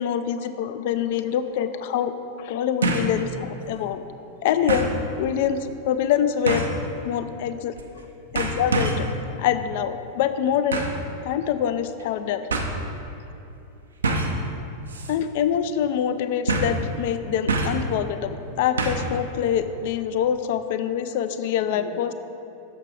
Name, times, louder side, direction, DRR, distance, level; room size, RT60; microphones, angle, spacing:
voice 1, 0.0-2.1 2.4-4.0 4.4-4.9 5.2-6.7 7.0-7.8 8.3-9.1 9.4-10.8 11.2-12.5 15.1-22.1, left 9 dB, 50° left, 11 dB, 0.3 m, -25 dB
sound 1, 0.9-1.0 2.8-3.2 3.6-3.7 4.7-5.0 6.4-6.8 7.8-8.0 8.3-9.1 10.7-11.0 12.0-12.1 12.5-12.7 14.0-14.4 14.9-15.1 15.4-15.5 16.5-16.8 17.5-17.9 18.8-19.1 19.4-19.5, right 2 dB, 70° right, 0.6 m, -25 dB
6.5 x 4.9 x 4.7 m, 2.8 s
figure-of-eight pair, 90°, 0 cm